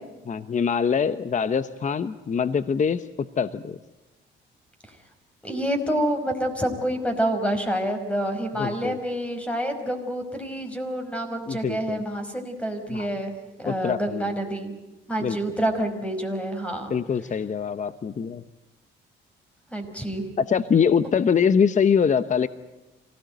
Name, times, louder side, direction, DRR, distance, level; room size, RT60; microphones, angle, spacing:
voice 1, 0.3-3.8 8.6-9.0 11.5-12.0 12.9-13.1 13.6-14.3 15.2-15.4 16.9-18.4 20.4-22.5, left 6 dB, 40° left, 13 dB, 0.9 m, -24 dB
voice 2, 5.4-14.7 15.1-16.9 19.7-20.2, right 1 dB, 5° left, 5 dB, 5.2 m, -28 dB
26.0 x 17.5 x 9.3 m, 1.0 s
cardioid pair, 90°, 20 cm